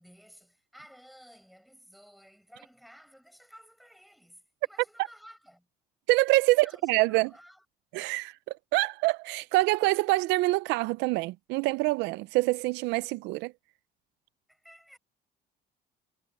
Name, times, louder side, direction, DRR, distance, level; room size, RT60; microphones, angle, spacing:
voice 1, 0.0-5.7 6.4-7.7 7.9-8.1 14.5-15.0, equal, ahead, 5.4 m, -55 dB
voice 2, 6.1-7.3 7.9-13.5, right 20 dB, 85° right, 0.5 m, -26 dB
cardioid pair, 110°, 17 cm